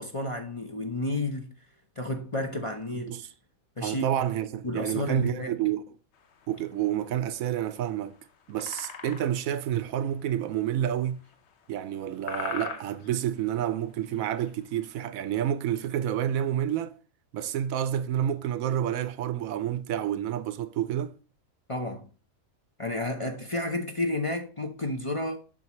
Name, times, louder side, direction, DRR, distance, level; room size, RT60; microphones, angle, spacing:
voice 1, 0.0-1.5 2.0-3.1 3.8-4.1 4.6-5.5 21.7-22.1 22.8-25.4, left 2 dB, 30° left, 0.7 m, -31 dB
voice 2, 3.8-5.8 6.5-8.1 8.5-11.2 11.7-16.9 17.3-21.1, right 10 dB, 80° right, 1.0 m, -29 dB
sound 1, 6.1-15.0, left 6 dB, 55° left, 1.0 m, -41 dB
7.5 x 5.9 x 3.0 m
omnidirectional pair, 1.5 m